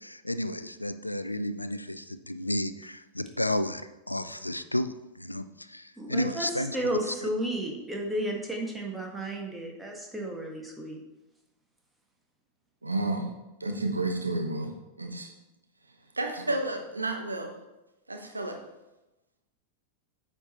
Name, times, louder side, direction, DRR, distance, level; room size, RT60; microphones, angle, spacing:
voice 1, 0.0-7.1, left 1 dB, 85° left, 12 dB, 0.4 m, -32 dB
voice 2, 6.0-6.5 6.7-11.0, right 1 dB, 5° right, -1 dB, 1.7 m, -33 dB
voice 3, 12.8-13.3 13.6-15.3 16.1-17.5 18.1-18.6, right 2 dB, 80° right, 3 dB, 1.0 m, -31 dB
8.8 x 5.0 x 4.3 m, 0.99 s
figure-of-eight pair, 90°, 0 cm